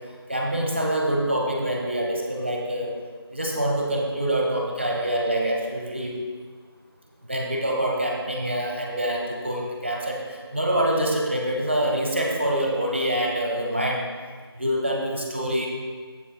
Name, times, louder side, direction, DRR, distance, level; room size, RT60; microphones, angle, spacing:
voice 1, 0.3-2.9 3.3-6.1 7.3-10.2 10.5-14.0 14.6-15.7, right 1 dB, 25° right, 0 dB, 1.0 m, -25 dB
16.5 x 6.4 x 2.2 m, 1.5 s
figure-of-eight pair, 175°, 14 cm